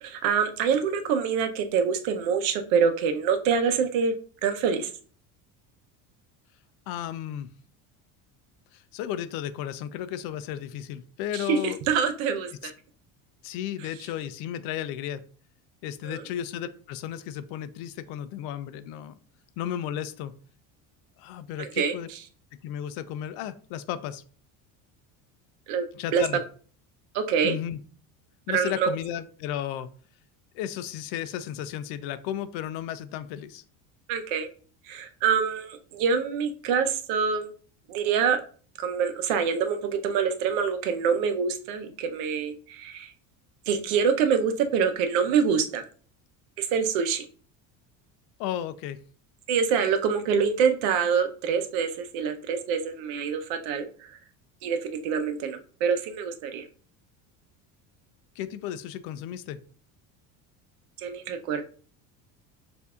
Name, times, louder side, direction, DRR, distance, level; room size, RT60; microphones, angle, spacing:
voice 1, 0.0-4.1 4.4-4.9 11.3-12.7 16.1-16.2 21.6-21.9 25.7-25.8 26.1-26.2 27.1-27.6 28.5-28.9 34.1-34.5 34.9-37.5 37.9-38.4 38.8-43.1 43.7-45.8 46.6-47.2 49.5-54.2 54.6-56.7 61.0-61.6, right 6 dB, 90° right, 6 dB, 0.8 m, -25 dB
voice 2, 6.9-7.5 8.7-11.8 12.6-12.7 13.4-15.2 15.8-19.2 19.6-20.3 21.2-22.1 22.6-24.2 25.9-26.4 27.4-27.8 28.5-29.9 30.5-33.6 48.4-49.0 58.4-59.6, left 10 dB, 75° left, 13 dB, 0.5 m, -34 dB
6.9 x 2.7 x 2.4 m, 0.42 s
cardioid pair, 160°, 38 cm